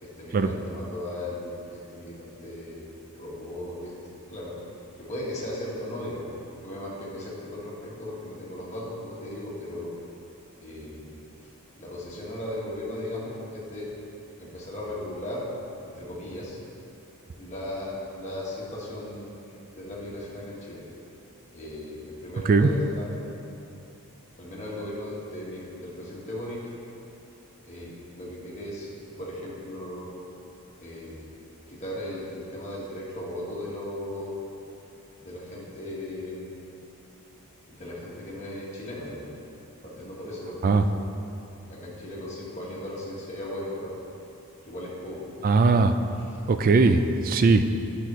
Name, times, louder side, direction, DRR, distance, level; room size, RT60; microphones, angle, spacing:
voice 1, 0.0-2.8 3.1-3.9 4.3-4.6 5.0-6.3 6.6-9.9 10.6-11.2 11.7-13.9 14.4-15.4 15.8-16.6 17.4-20.8 21.5-23.3 24.4-26.6 27.6-30.1 30.8-31.3 31.7-34.3 35.2-36.6 37.7-39.4 39.8-40.8 41.7-43.9 44.6-45.2 46.1-46.4, left 1 dB, 30° left, -6 dB, 1.6 m, -37 dB
voice 2, 45.4-45.9 46.5-47.6, right 4 dB, 40° right, 8 dB, 0.3 m, -19 dB
10.5 x 5.7 x 3.1 m, 2.8 s
head